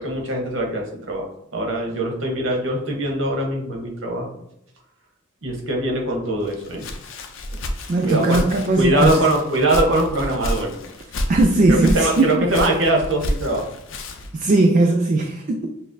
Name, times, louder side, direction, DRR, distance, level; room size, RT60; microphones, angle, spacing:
voice 1, 0.0-4.3 5.4-6.9 7.5-7.6 8.0-8.4 8.7-10.7 11.7-13.7, right 1 dB, 65° right, 0 dB, 0.9 m, -22 dB
Walk footsteps, 6.5-14.4, left 1 dB, 70° left, 0.5 m, -29 dB
voice 2, 7.9-9.3 11.3-12.4 14.3-15.7, right 2 dB, 40° right, 3 dB, 0.3 m, -18 dB
5.8 x 2.0 x 2.6 m, 0.78 s
head